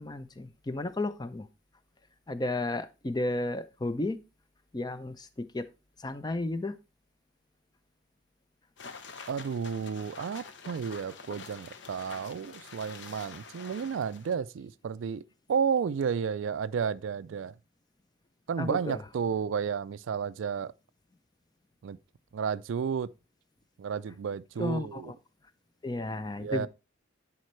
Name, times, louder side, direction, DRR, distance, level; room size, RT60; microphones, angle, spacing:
voice 1, 0.0-1.5 2.3-4.2 4.7-5.7 6.0-6.8 18.6-19.0 24.6-25.0 25.8-26.7, left 2 dB, 20° left, 0.4 m, -33 dB
sound 1, 8.8-14.4, left 5 dB, 60° left, 0.8 m, -46 dB
voice 2, 9.3-15.2 15.5-17.5 18.5-20.7 21.8-22.0 22.3-23.1 23.8-25.1 26.4-26.7, right 6 dB, 70° right, 0.3 m, -32 dB
11.0 x 4.3 x 3.1 m
head